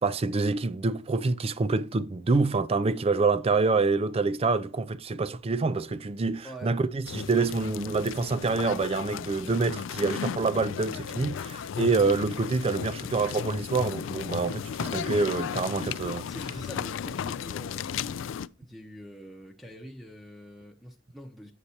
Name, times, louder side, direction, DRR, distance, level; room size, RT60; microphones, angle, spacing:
voice 1, 0.0-16.3, right 3 dB, 30° right, 0.4 m, -26 dB
voice 2, 6.4-6.8 14.8-15.2 16.3-18.1 18.6-21.5, equal, ahead, 0.7 m, -44 dB
sound 1, 7.1-18.5, left 8 dB, 65° left, 0.3 m, -35 dB
8.3 x 6.5 x 2.9 m
head